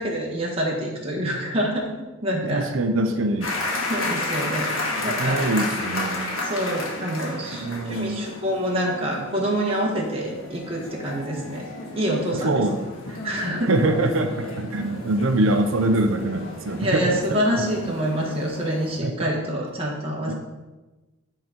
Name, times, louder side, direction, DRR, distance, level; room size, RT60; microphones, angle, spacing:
voice 1, 0.0-2.6 3.9-4.7 5.0-5.5 6.4-11.6 11.9-12.6 13.2-13.8 16.8-20.3, equal, 30° right, -3 dB, 1.3 m, -26 dB
voice 2, 2.5-3.5 5.0-6.4 7.6-8.3 12.4-12.8 13.6-17.7 19.0-19.3 20.3-20.4, right 2 dB, 75° right, 6 dB, 0.6 m, -24 dB
sound 1, 3.4-19.0, left 2 dB, 90° left, 1.6 m, -32 dB
9.5 x 3.8 x 4.4 m, 1.1 s
head